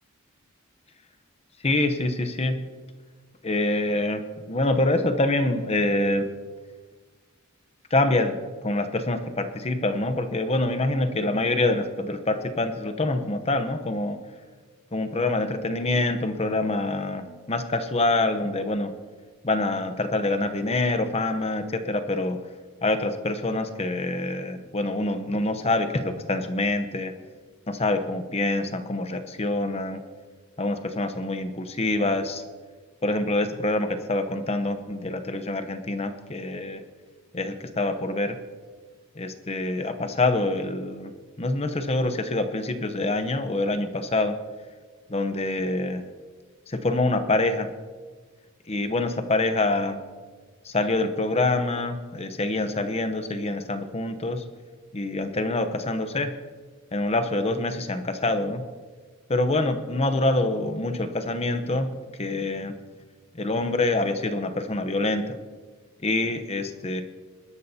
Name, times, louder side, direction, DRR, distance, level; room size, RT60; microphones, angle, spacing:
voice 1, 1.6-2.6 3.4-6.3 7.9-14.2 14.9-18.9 19.4-22.4 22.8-27.1 27.7-30.0 30.6-32.5 33.0-36.8 37.3-38.4 39.1-44.4 45.1-46.0 46.7-47.7 48.7-50.0 50.6-54.4 54.9-56.3 56.9-58.6 59.3-61.9 62.2-62.8 63.3-65.4 66.0-67.0, left 2 dB, 30° left, 8 dB, 0.8 m, -26 dB
21.5 x 12.5 x 2.8 m, 1.4 s
head